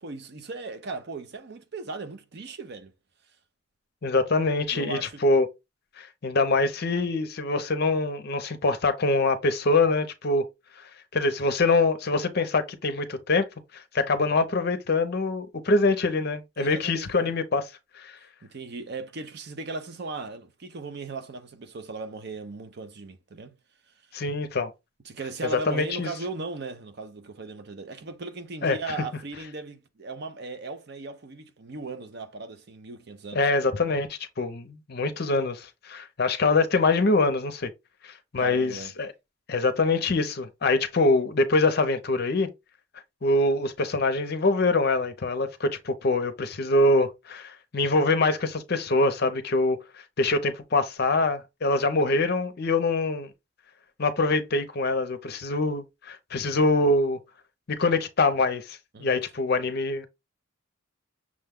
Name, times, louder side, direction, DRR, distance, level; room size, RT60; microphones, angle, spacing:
voice 1, 0.0-2.9 4.7-5.2 16.6-17.3 18.4-23.5 24.1-24.2 25.0-33.4 38.4-38.9 58.9-59.3, right 3 dB, 50° right, 0.6 m, -37 dB
voice 2, 4.0-5.5 6.0-10.4 11.1-13.5 13.7-17.7 18.0-18.2 24.1-24.7 25.7-26.1 28.6-28.8 33.3-37.7 38.0-39.1 39.5-42.5 43.2-49.8 50.2-53.3 54.0-57.2 57.7-60.1, left 3 dB, 50° left, 0.6 m, -24 dB
6.2 x 2.2 x 3.5 m
head